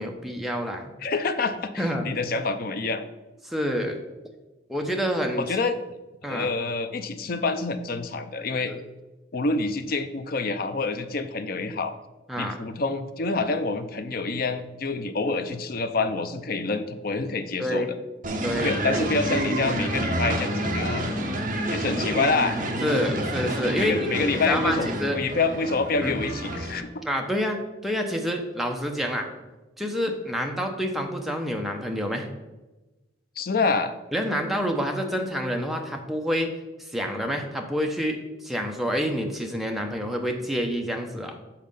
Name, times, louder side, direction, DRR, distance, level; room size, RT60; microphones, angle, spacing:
voice 1, 0.0-0.9 1.8-2.1 3.5-4.0 4.7-5.4 6.2-6.5 8.7-8.8 12.3-12.6 17.6-17.9 18.4-18.7 22.8-25.2 26.0-26.2 27.0-29.3 29.8-32.3 34.1-36.5 36.9-41.3, equal, ahead, 2 dB, 0.7 m, -28 dB
voice 2, 1.0-3.0 5.4-5.8 6.2-8.7 9.3-11.9 12.4-17.9 18.6-21.1 21.7-22.6 23.8-26.9 33.4-33.9, left 3 dB, 50° left, 9 dB, 0.5 m, -27 dB
sound 1, 18.2-26.8, right 1 dB, 40° right, 1.0 m, -28 dB
7.4 x 4.2 x 5.5 m, 1.1 s
head